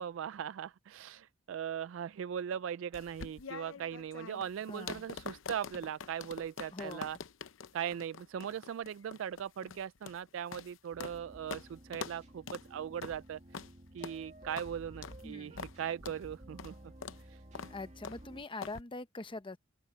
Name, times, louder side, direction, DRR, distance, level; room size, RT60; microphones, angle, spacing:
voice 1, 0.0-7.2 7.7-13.4 13.9-16.8 17.3-17.4, right 8 dB, 75° right, 0.3 m, -39 dB
sound 1, 2.9-11.2 11.5-11.7 11.9-12.2 12.5-12.7 13.0-13.2 13.5-13.7 14.0-14.2 14.6-14.7 15.0-15.2 15.6-15.8 16.0-16.2 16.6-16.7 17.0-17.2 17.5-17.7 18.0-18.2 18.6-18.8, left 5 dB, 80° left, 0.7 m, -45 dB
voice 2, 4.7-5.0 6.7-7.1 15.2-15.6 17.7-19.6, left 3 dB, 25° left, 0.8 m, -43 dB
sound 2, 10.9-18.5, right 1 dB, 35° right, 2.3 m, -53 dB
open air
head